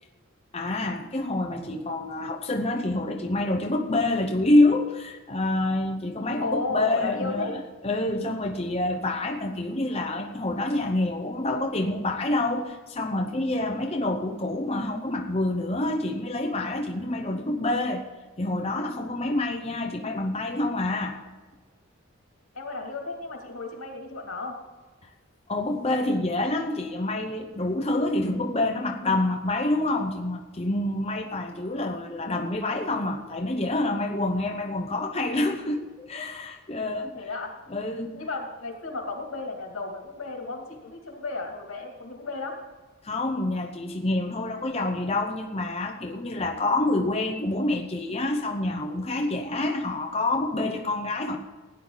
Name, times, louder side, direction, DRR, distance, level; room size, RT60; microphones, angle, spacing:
voice 1, 0.5-18.0 18.4-21.2 25.5-37.2 37.7-38.2 43.0-51.4, left 2 dB, 30° left, 2 dB, 0.9 m, -27 dB
voice 2, 6.4-7.6 19.2-19.8 22.5-24.6 37.1-37.5 38.1-42.5, left 3 dB, 90° left, 1 dB, 2.7 m, -34 dB
16.5 x 10.0 x 4.0 m, 1.3 s
head